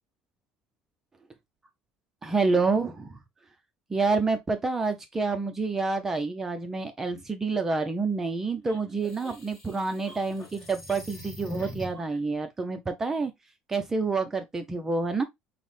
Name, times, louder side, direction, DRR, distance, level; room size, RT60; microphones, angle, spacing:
voice 1, 2.2-3.2 3.9-13.3 13.7-15.2, right 4 dB, 15° right, 0.4 m, -28 dB
sound 1, 8.7-12.2, equal, 15° left, 1.0 m, -44 dB
5.5 x 2.0 x 3.1 m
cardioid pair, 160°, 3 cm